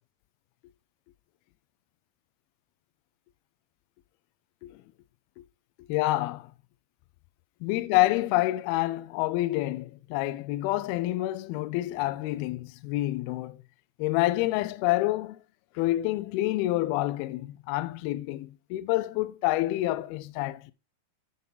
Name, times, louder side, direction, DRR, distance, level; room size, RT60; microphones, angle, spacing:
voice 1, 5.9-6.5 7.6-13.6 14.0-15.4 15.8-20.7, left 17 dB, 90° left, 2.2 m, -28 dB
11.0 x 5.6 x 3.9 m
omnidirectional pair, 5.0 m